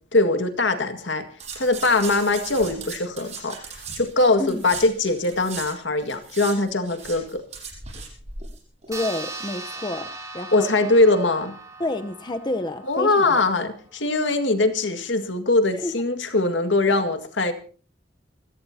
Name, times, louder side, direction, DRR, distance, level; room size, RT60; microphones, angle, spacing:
voice 1, 0.1-1.2 1.6-3.6 4.0-7.4 10.5-11.5 12.9-17.5, left 2 dB, 80° left, 8 dB, 2.0 m, -21 dB
sound 1, 1.4-5.7 6.0-8.6 8.8-8.9, right 5 dB, 40° right, 7.7 m, -38 dB
voice 2, 8.9-10.1 10.3-10.7 11.8-13.3 15.8-15.9, left 1 dB, 25° left, 7 dB, 0.9 m, -29 dB
sound 2, 8.9-13.8, right 3 dB, 20° right, 3.1 m, -39 dB
26.5 x 16.5 x 2.9 m, 0.40 s
head